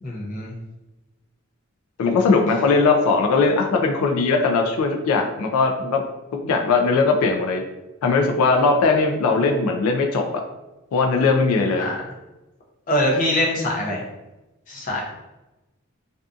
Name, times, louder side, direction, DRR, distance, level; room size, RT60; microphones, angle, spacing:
voice 1, 0.0-0.5 11.8-12.0 12.9-14.0 14.7-15.1, left 1 dB, 40° left, -2 dB, 0.5 m, -23 dB
voice 2, 2.0-6.0 6.3-7.6 8.0-10.4 10.9-11.9, left 4 dB, 90° left, 3 dB, 0.3 m, -19 dB
2.5 x 2.4 x 2.4 m, 1.0 s
head